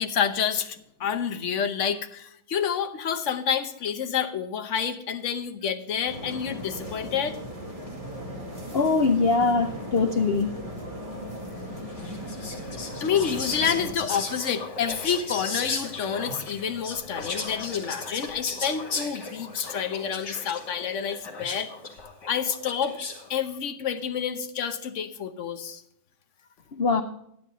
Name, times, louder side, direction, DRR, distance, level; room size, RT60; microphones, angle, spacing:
voice 1, 0.0-7.4 11.6-12.7 13.0-21.7 22.3-23.0 23.3-25.8, left 7 dB, 50° left, 8 dB, 1.0 m, -29 dB
sound 1, 6.0-13.9, equal, 20° right, 2.2 m, -37 dB
voice 2, 8.7-10.5 26.7-27.0, left 4 dB, 85° left, 7 dB, 0.5 m, -22 dB
Whispering, 12.0-23.3, left 4 dB, 65° left, 2.6 m, -36 dB
11.5 x 10.0 x 4.0 m, 0.76 s
omnidirectional pair, 2.0 m